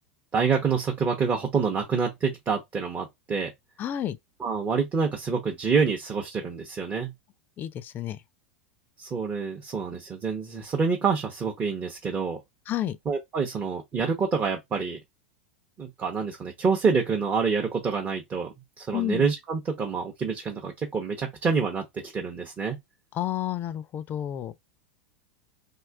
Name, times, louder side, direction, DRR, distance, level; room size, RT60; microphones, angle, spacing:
voice 1, 0.3-3.5 4.4-7.1 9.0-12.4 13.1-15.0 15.8-22.8, right 5 dB, 25° right, 0.7 m, -27 dB
voice 2, 3.8-4.2 7.6-8.2 12.7-13.0 18.9-19.2 23.1-24.5, left 12 dB, 35° left, 0.3 m, -30 dB
2.8 x 2.4 x 3.4 m
hypercardioid pair, 110°, 6 cm